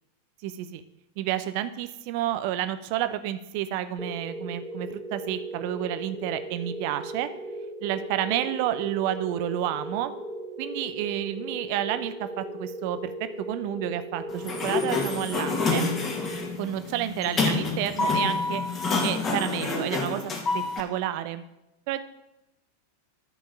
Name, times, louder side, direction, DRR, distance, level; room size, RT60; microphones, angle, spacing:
voice 1, 0.4-0.8 1.2-7.3 7.8-10.1 10.6-15.9 16.6-18.6 19.0-21.4 21.9-22.0, right 12 dB, 45° right, 11 dB, 0.7 m, -30 dB
sound 1, 4.0-17.1, right 1 dB, ahead, 0.9 m, -38 dB
Sliding door, 14.3-20.8, left 3 dB, 25° left, 2.0 m, -28 dB
11.5 x 5.6 x 5.9 m, 0.91 s
figure-of-eight pair, 90°, 0 cm